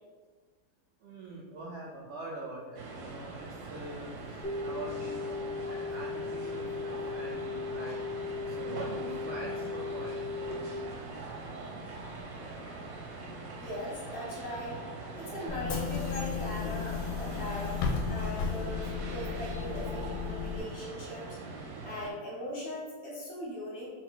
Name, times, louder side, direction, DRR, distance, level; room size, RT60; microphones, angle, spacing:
voice 1, 1.0-8.0 8.4-10.8, right 2 dB, 65° right, -4 dB, 0.7 m, -44 dB
sound 1, 2.8-22.1, right 3 dB, 80° right, 1.2 m, -42 dB
sound 2, 4.4-10.5, left 4 dB, 10° left, 0.4 m, -37 dB
voice 2, 13.6-14.8 15.2-23.9, left 1 dB, 50° left, -5 dB, 1.0 m, -40 dB
Bus / Engine, 15.5-20.6, left 6 dB, 75° left, 1.0 m, -34 dB
3.8 x 2.2 x 3.8 m, 1.5 s
omnidirectional pair, 1.7 m